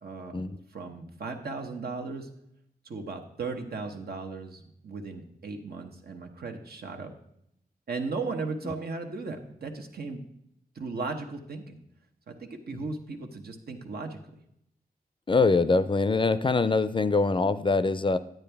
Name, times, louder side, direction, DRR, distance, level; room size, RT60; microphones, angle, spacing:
voice 1, 0.0-0.4 0.7-2.3 2.8-7.1 7.9-10.2 10.7-11.8 12.3-14.2, right 4 dB, 85° right, 4 dB, 1.0 m, -36 dB
voice 2, 15.3-18.2, left 3 dB, 30° left, 14 dB, 0.4 m, -24 dB
10.5 x 9.0 x 3.4 m, 0.75 s
wide cardioid pair, 80°, 16 cm